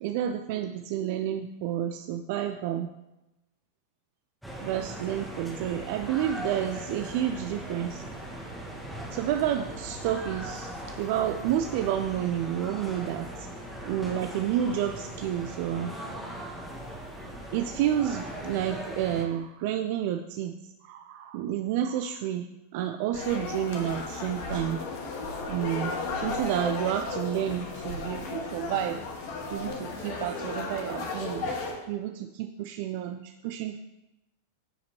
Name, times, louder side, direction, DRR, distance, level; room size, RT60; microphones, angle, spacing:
voice 1, 0.0-2.9 4.6-8.0 9.1-13.5 13.8-15.9 17.5-20.5 20.8-22.5 22.7-24.8 25.5-25.9 26.2-29.0 29.5-31.5 31.9-33.8, right 10 dB, 50° right, 6 dB, 0.4 m, -30 dB
sound 1, 4.4-19.3, right 1 dB, ahead, 1.6 m, -39 dB
sound 2, 23.1-31.7, left 3 dB, 50° left, 1.5 m, -34 dB
14.5 x 5.0 x 3.0 m, 0.95 s
figure-of-eight pair, 90°, 0 cm